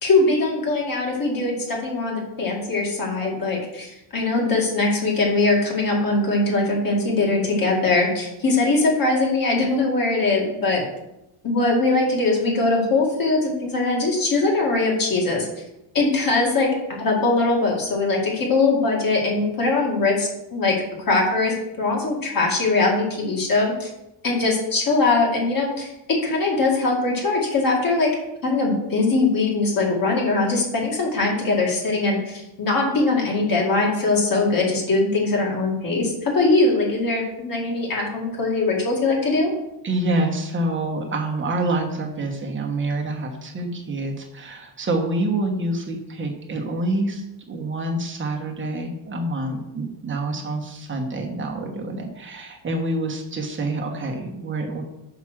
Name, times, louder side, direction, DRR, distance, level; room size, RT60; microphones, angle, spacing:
voice 1, 0.0-10.8 11.4-15.5 15.9-16.7 17.0-23.9 24.2-28.2 28.4-39.5, left 3 dB, 45° left, -1 dB, 2.2 m, -21 dB
voice 2, 39.8-54.8, right 2 dB, 25° right, 1 dB, 1.2 m, -27 dB
5.9 x 5.2 x 6.2 m, 0.89 s
cardioid pair, 165°, 49 cm